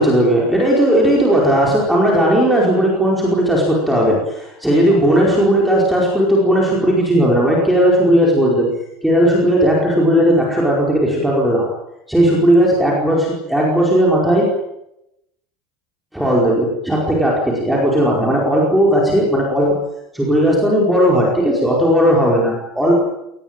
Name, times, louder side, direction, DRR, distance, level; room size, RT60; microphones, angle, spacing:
voice 1, 0.0-8.7 9.0-11.7 12.1-14.5 16.1-19.8 20.1-22.9, equal, ahead, -3 dB, 4.9 m, -15 dB
25.5 x 19.0 x 9.1 m, 0.85 s
cardioid pair, 175°, 0 cm